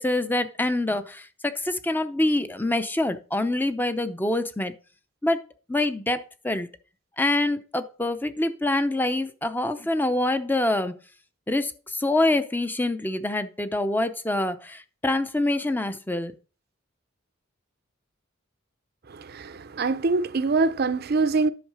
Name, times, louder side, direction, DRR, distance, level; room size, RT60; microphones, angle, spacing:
voice 1, 0.0-4.7 5.2-5.4 5.7-6.7 7.2-10.9 11.5-16.3, left 2 dB, 10° left, 0.6 m, -25 dB
voice 2, 19.1-21.5, right 3 dB, 50° right, 0.6 m, -24 dB
10.5 x 6.4 x 4.8 m
head